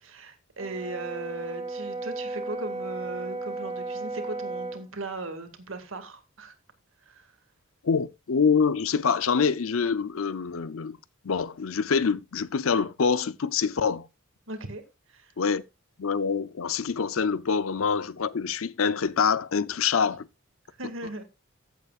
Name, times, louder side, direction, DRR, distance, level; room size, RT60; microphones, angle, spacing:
voice 1, 0.0-6.6 7.1-7.3 14.5-14.8 15.1-15.3 20.8-21.2, right 2 dB, 70° right, 2.1 m, -38 dB
Brass instrument, 0.6-4.9, right 3 dB, 25° right, 2.7 m, -34 dB
voice 2, 7.8-11.0 11.2-14.1 15.4-15.6 16.0-20.3, left 6 dB, 85° left, 0.6 m, -25 dB
15.0 x 8.3 x 2.4 m
head